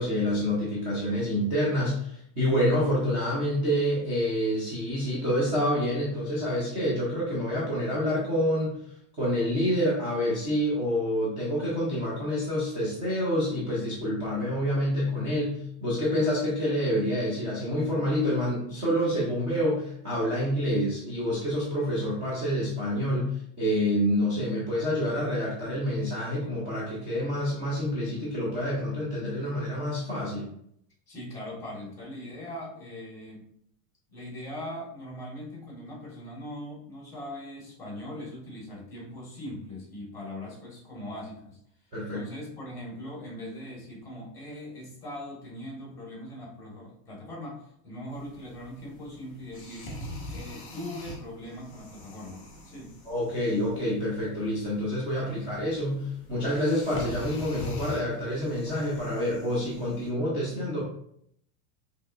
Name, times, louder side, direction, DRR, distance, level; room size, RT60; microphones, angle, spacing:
voice 1, 0.0-8.8 9.2-30.5 41.9-42.2 53.1-60.8, equal, 10° right, -8 dB, 0.4 m, -27 dB
voice 2, 31.1-33.5 34.1-41.6 42.1-49.9 50.3-52.9 55.2-55.6, left 1 dB, 5° left, -4 dB, 1.4 m, -40 dB
sound 1, 48.1-60.1, left 1 dB, 25° left, 1.4 m, -43 dB
5.5 x 2.9 x 2.4 m, 0.70 s
supercardioid pair, 170°, 49 cm